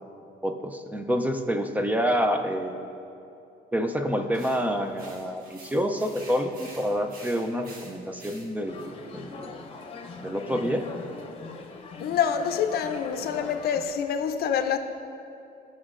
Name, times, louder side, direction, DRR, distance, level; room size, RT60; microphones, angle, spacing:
voice 1, 0.4-2.8 3.7-9.5 10.2-10.9, equal, 10° right, 6 dB, 0.5 m, -28 dB
sound 1, 4.3-8.9, right 1 dB, 55° right, 1.4 m, -47 dB
sound 2, 8.7-13.9, left 4 dB, 35° left, 0.9 m, -41 dB
voice 2, 12.0-14.8, left 8 dB, 65° left, 7 dB, 0.6 m, -26 dB
15.5 x 6.1 x 2.5 m, 2.7 s
cardioid pair, 110°, 17 cm